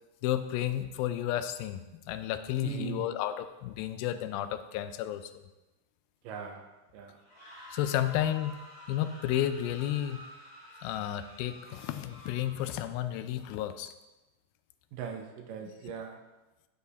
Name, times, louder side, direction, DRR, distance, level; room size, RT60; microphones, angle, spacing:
voice 1, 0.2-5.3 7.7-8.6 8.9-10.2 10.8-13.9 15.6-15.7, left 12 dB, 90° left, 10 dB, 2.4 m, -32 dB
voice 2, 2.6-3.0 6.2-6.7 6.9-7.2 14.9-16.2, right 7 dB, 75° right, 4 dB, 2.2 m, -39 dB
sound 1, 7.2-12.9, equal, 35° left, 3.2 m, -50 dB
10.0 x 8.1 x 2.8 m, 1.1 s
omnidirectional pair, 4.2 m